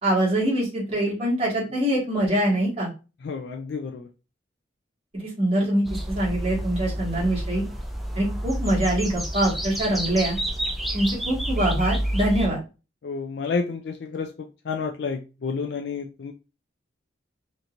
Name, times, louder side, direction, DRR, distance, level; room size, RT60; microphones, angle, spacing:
voice 1, 0.0-2.9 5.1-7.6 8.2-10.4 10.9-12.6, right 1 dB, 30° right, -6 dB, 1.9 m, -24 dB
voice 2, 3.2-4.1 13.0-14.3 14.7-16.3, left 5 dB, 65° left, 4 dB, 0.4 m, -30 dB
sound 1, 5.8-12.5, right 1 dB, ahead, 0.5 m, -29 dB
4.3 x 3.0 x 2.5 m, 0.31 s
head